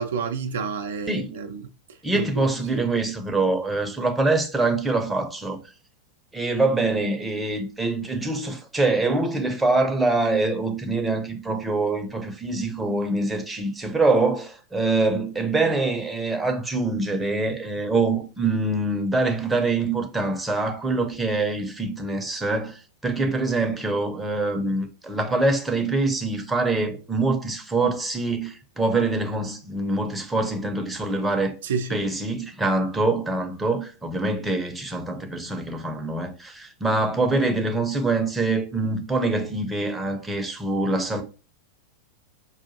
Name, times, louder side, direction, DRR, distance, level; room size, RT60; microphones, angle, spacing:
voice 1, 0.0-1.7 2.1-2.3 2.7-2.9 31.6-32.0, right 5 dB, 60° right, 0.4 m, -29 dB
voice 2, 2.0-5.6 6.3-31.6 31.9-41.2, right 2 dB, 10° right, 0.6 m, -24 dB
4.7 x 2.5 x 2.7 m
figure-of-eight pair, 90°, 0 cm